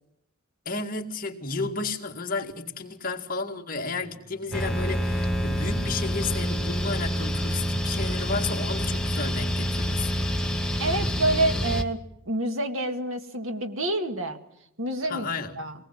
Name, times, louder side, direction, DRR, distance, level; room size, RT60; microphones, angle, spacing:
voice 1, 0.7-10.1 15.1-15.7, left 3 dB, 40° left, 2 dB, 2.1 m, -32 dB
sound 1, 4.0-5.5 6.0-6.9 8.0-9.7 10.8-11.9, left 2 dB, 80° right, 7.7 m, -46 dB
sound 2, 4.5-11.8, equal, 5° left, 1.1 m, -27 dB
voice 2, 10.8-14.4 14.8-15.3 15.6-15.7, right 1 dB, 65° right, 7 dB, 1.9 m, -27 dB
24.0 x 19.5 x 7.6 m, 0.77 s
head